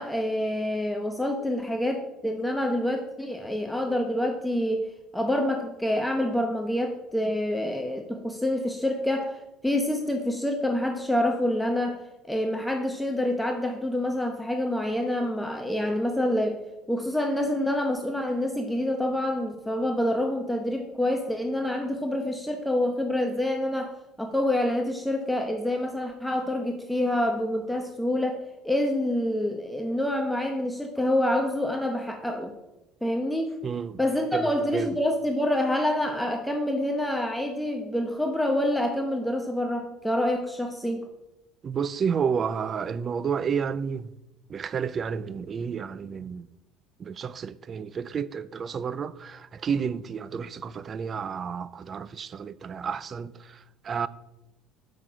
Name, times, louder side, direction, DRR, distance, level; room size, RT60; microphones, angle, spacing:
voice 1, 0.0-4.9 5.1-12.0 12.3-16.6 16.9-23.9 24.2-32.5 33.0-33.6 34.0-41.0, left 1 dB, 5° left, 0.8 m, -27 dB
voice 2, 33.6-34.0 34.3-35.0 41.6-44.1 44.5-46.5 47.0-54.1, right 6 dB, 35° right, 0.4 m, -31 dB
7.2 x 5.9 x 4.9 m
supercardioid pair, 110°, 0 cm